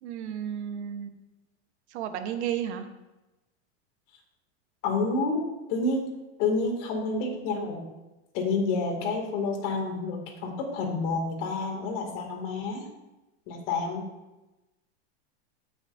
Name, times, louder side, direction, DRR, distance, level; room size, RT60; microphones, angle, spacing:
voice 1, 0.0-1.1 1.9-2.8, right 9 dB, 70° right, 8 dB, 1.1 m, -33 dB
voice 2, 4.8-6.1 6.4-7.8 8.3-12.8 13.5-14.1, left 3 dB, 55° left, 1 dB, 2.4 m, -29 dB
15.0 x 6.4 x 2.6 m, 1.0 s
supercardioid pair, 150°, 34 cm